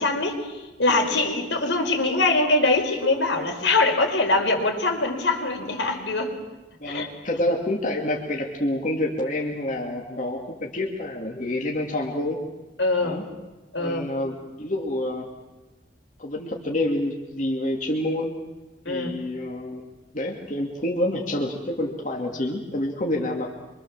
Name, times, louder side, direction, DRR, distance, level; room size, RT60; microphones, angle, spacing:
voice 1, 0.0-6.3 6.8-7.1 12.8-13.2 13.7-14.0 18.8-19.1, left 2 dB, 85° left, 2 dB, 4.9 m, -23 dB
voice 2, 6.8-12.4 13.0-13.2 13.8-15.3 16.2-18.4 18.9-23.5, left 1 dB, 45° left, 0 dB, 2.7 m, -28 dB
26.0 x 24.5 x 7.5 m, 1.1 s
head